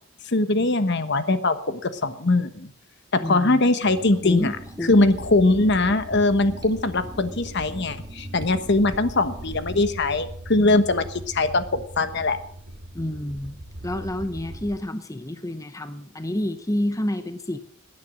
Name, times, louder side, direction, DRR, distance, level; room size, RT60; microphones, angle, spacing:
voice 1, 0.3-2.7 3.1-4.5 4.9-12.4, left 2 dB, 60° left, 11 dB, 1.2 m, -21 dB
voice 2, 3.2-3.6 4.2-5.1 12.9-13.6 13.8-17.6, left 1 dB, 15° left, 10 dB, 0.8 m, -29 dB
sound 1, 3.8-9.9, right 1 dB, 20° right, 1.7 m, -42 dB
sound 2, 4.9-14.8, right 1 dB, 70° right, 2.3 m, -40 dB
18.0 x 9.6 x 6.3 m, 0.62 s
head